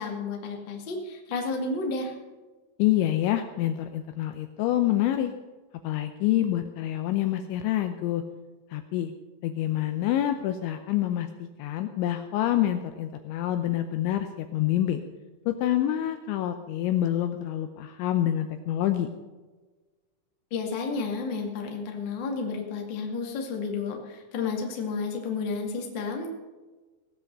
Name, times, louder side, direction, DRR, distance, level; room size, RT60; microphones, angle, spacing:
voice 1, 0.0-2.1 20.5-26.3, left 4 dB, 45° left, 1 dB, 1.5 m, -31 dB
voice 2, 2.8-5.3 5.8-8.2 8.7-9.1 9.4-15.0 15.5-19.1, left 12 dB, 80° left, 7 dB, 2.8 m, -27 dB
18.0 x 8.2 x 6.7 m, 1.3 s
omnidirectional pair, 5.9 m